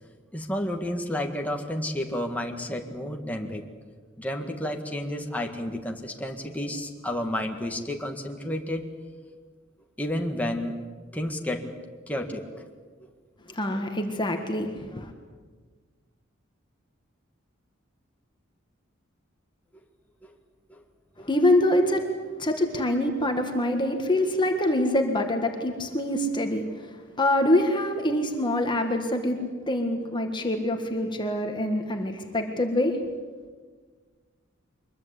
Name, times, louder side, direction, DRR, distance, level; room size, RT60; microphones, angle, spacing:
voice 1, 0.3-3.6 4.2-8.9 10.0-10.8 11.1-11.8 12.1-12.6 20.2-20.3 20.7-20.8 21.2-21.3, left 1 dB, 10° left, 2 dB, 1.9 m, -31 dB
voice 2, 13.5-15.1 21.2-22.0 22.4-26.9 27.2-29.4 29.7-33.0, left 1 dB, 25° left, 4 dB, 1.7 m, -25 dB
24.0 x 21.5 x 8.4 m, 1.5 s
head